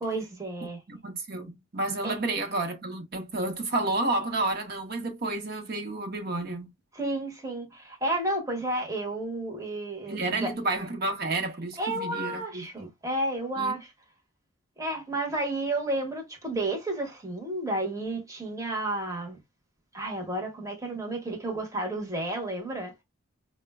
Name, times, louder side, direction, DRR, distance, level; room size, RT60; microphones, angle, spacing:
voice 1, 0.0-0.8 2.0-2.2 6.9-10.5 11.8-13.9 14.8-19.4 19.9-22.9, right 2 dB, 15° right, 0.8 m, -31 dB
voice 2, 0.9-6.7 10.1-12.9 13.6-13.7, right 2 dB, 50° right, 0.8 m, -30 dB
4.8 x 2.1 x 2.2 m
head